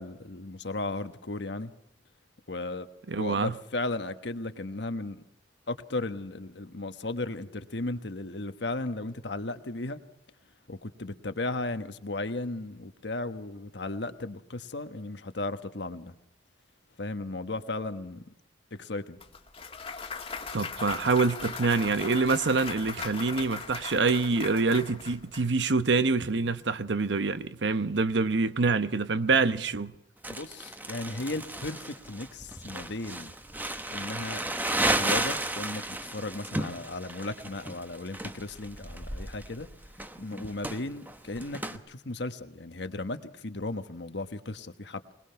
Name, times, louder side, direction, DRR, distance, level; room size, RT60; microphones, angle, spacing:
voice 1, 0.0-1.7 2.5-2.9 3.1-5.2 5.7-10.0 10.7-16.1 17.0-18.3 18.7-19.2 30.3-33.3 33.9-34.4 34.9-39.7 40.2-45.1, left 2 dB, 70° left, 1.3 m, -35 dB
voice 2, 3.1-3.5 20.5-29.9, right 4 dB, 75° right, 0.9 m, -26 dB
Clapping / Cheering / Applause, 19.2-25.4, left 5 dB, 30° left, 1.7 m, -39 dB
Crumpling crinkling, 30.2-41.8, right 1 dB, 10° right, 1.1 m, -33 dB
21.5 x 21.0 x 5.8 m
head